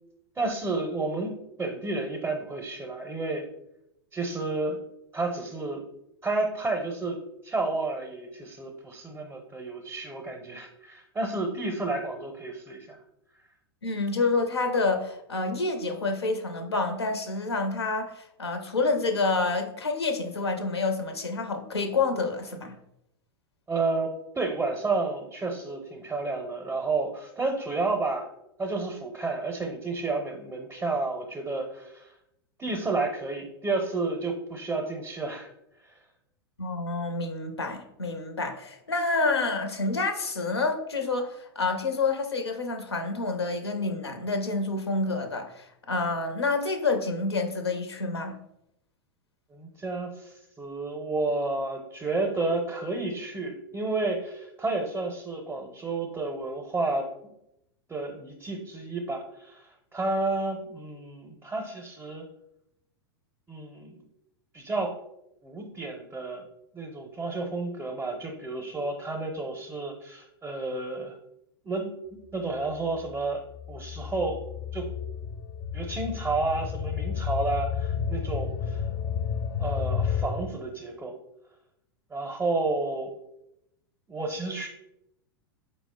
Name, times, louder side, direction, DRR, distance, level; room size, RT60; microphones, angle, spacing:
voice 1, 0.4-3.5 4.1-4.8 5.1-5.8 6.2-13.0 23.7-28.3 28.6-32.1 32.6-35.5 49.5-57.1 57.9-62.2 63.5-64.0 64.5-65.0 65.4-66.4 66.7-71.2 71.6-71.9 72.3-73.4 73.7-74.4 74.7-74.9 75.7-78.8 79.6-81.1 82.1-83.1 84.1-84.7, right 3 dB, 15° right, 1 dB, 0.5 m, -31 dB
voice 2, 13.8-22.8 36.6-48.4, left 3 dB, 90° left, 6 dB, 0.5 m, -28 dB
sound 1, 72.7-80.3, left 7 dB, 40° left, 0.4 m, -31 dB
4.6 x 2.0 x 3.6 m, 0.82 s
hypercardioid pair, 95°, 13 cm